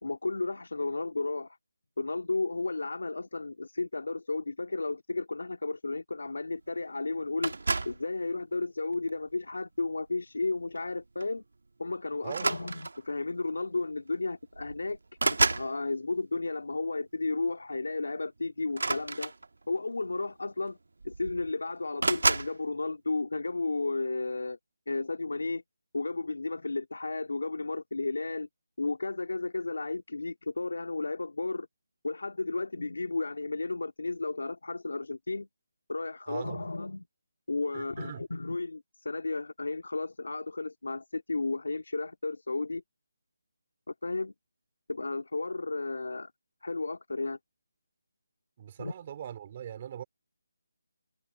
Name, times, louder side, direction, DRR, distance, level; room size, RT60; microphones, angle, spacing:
voice 1, 0.0-1.6 2.0-7.5 7.9-11.4 11.8-19.3 19.7-20.8 21.0-24.6 24.9-25.6 25.9-28.5 28.8-31.7 32.0-35.5 35.9-37.1 37.5-42.8 43.9-44.3 44.9-46.3 46.6-47.4 48.8-48.9, left 3 dB, 90° left, 2.4 m, -33 dB
sound 1, 7.4-8.0 8.9-9.2 10.7-10.9 11.2-11.4 12.3-13.1 14.1-14.2 14.5-15.7 18.7-19.8 20.7-20.8 21.0-21.5 22.0-22.5, right 3 dB, 80° right, 1.4 m, -30 dB
voice 2, 36.3-36.6 37.7-38.2 48.6-50.0, right 9 dB, 20° right, 2.9 m, -41 dB
hypercardioid pair, 180°, 0 cm